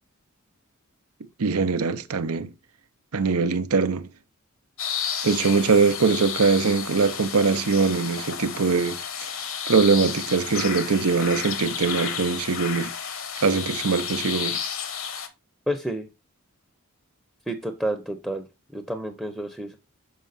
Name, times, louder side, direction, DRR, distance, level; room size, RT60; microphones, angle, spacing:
voice 1, 1.4-2.5 3.1-4.1 5.2-9.0 9.7-12.9 13.4-14.6, right 4 dB, 90° right, 0.7 m, -22 dB
sound 1, 4.8-15.3, left 7 dB, 65° left, 1.1 m, -32 dB
voice 2, 15.7-16.1 17.5-18.4 18.7-19.8, right 1 dB, ahead, 0.6 m, -29 dB
6.5 x 4.6 x 4.0 m
head